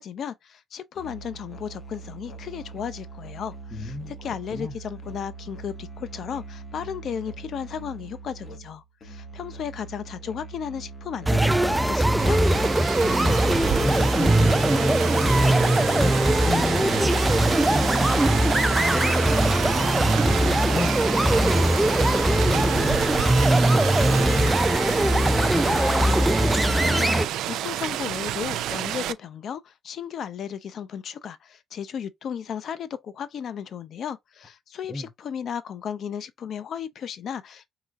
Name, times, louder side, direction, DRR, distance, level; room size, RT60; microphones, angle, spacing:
voice 1, 0.0-12.4 26.8-37.7, left 8 dB, 65° left, 0.6 m, -35 dB
Musical instrument, 0.9-16.3, right 4 dB, 45° left, 1.4 m, -42 dB
voice 2, 3.7-4.1 4.5-4.7 13.0-13.4 13.7-18.3 18.9-23.1 23.7-25.2 25.5-25.6 34.9-35.1, left 2 dB, 25° left, 0.9 m, -33 dB
sound 1, 11.3-27.3, right 1 dB, 10° right, 0.4 m, -21 dB
Rain, 12.2-29.1, right 13 dB, 85° right, 0.4 m, -30 dB
4.9 x 3.3 x 2.4 m
cardioid pair, 90°, 0 cm